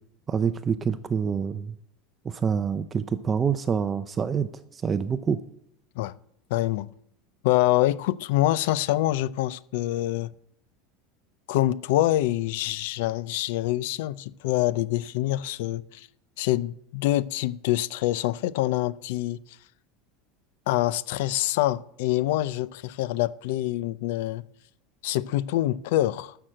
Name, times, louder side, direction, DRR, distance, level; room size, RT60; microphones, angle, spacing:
voice 1, 0.3-1.7 2.2-5.4, right 6 dB, 20° right, 0.4 m, -26 dB
voice 2, 6.5-6.9 7.4-10.3 11.5-16.1 16.4-19.4 20.7-24.4 25.0-26.4, left 15 dB, 70° left, 0.5 m, -25 dB
13.0 x 6.0 x 7.6 m
supercardioid pair, 165°, 0 cm